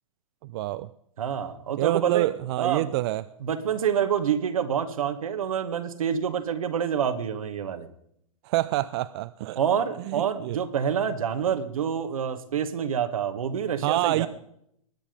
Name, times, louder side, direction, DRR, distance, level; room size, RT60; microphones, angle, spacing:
voice 1, 0.5-0.9 1.8-3.2 8.4-9.6 10.1-10.6 13.8-14.3, right 16 dB, 50° right, 14 dB, 0.5 m, -27 dB
voice 2, 1.2-2.3 2.6-2.9 3.4-7.9 9.5-14.3, right 8 dB, 80° right, 9 dB, 1.6 m, -27 dB
20.5 x 9.1 x 5.1 m, 0.73 s
hypercardioid pair, 125°, 18 cm